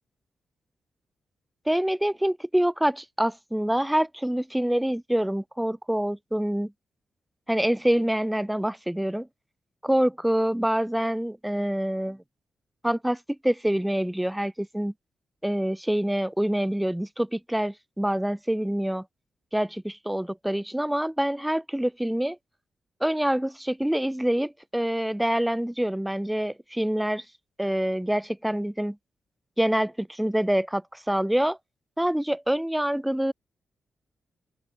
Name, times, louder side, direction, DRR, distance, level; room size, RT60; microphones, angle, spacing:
voice 1, 1.7-6.7 7.5-9.3 9.8-12.2 12.8-14.9 15.4-19.1 19.5-22.4 23.0-27.2 27.6-29.0 29.6-31.6 32.0-33.3, right 1 dB, 5° right, 2.3 m, -26 dB
open air
cardioid pair, 75°, 0 cm